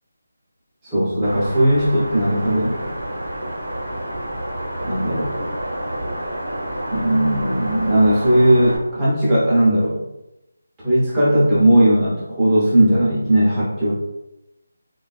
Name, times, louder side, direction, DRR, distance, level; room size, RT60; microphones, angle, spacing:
voice 1, 0.8-2.8 4.8-5.3 6.9-10.0 10.8-13.9, right 1 dB, 10° right, -9 dB, 0.6 m, -17 dB
sound 1, 1.2-8.8, right 1 dB, 90° right, 0.8 m, -29 dB
3.1 x 2.3 x 2.4 m, 0.87 s
figure-of-eight pair, 175°, 0 cm